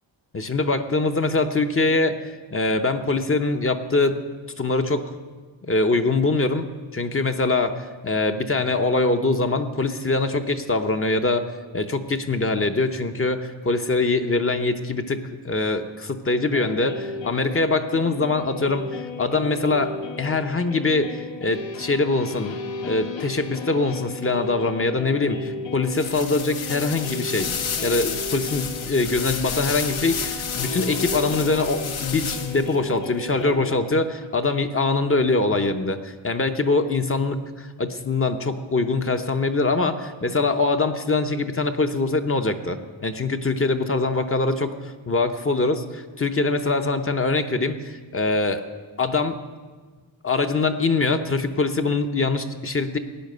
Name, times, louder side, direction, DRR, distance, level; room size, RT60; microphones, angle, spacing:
voice 1, 0.3-4.2 4.6-5.1 5.6-6.7 6.9-11.5 11.7-22.5 22.8-27.5 27.8-48.6 49.0-49.4 50.2-53.0, left 3 dB, 30° left, 7 dB, 0.8 m, -23 dB
sound 1, 16.5-34.3, left 4 dB, 70° left, 1.1 m, -35 dB
sound 2, 25.9-32.8, left 6 dB, 90° left, 1.3 m, -31 dB
15.5 x 9.9 x 6.7 m, 1.4 s
wide cardioid pair, 125°, 47 cm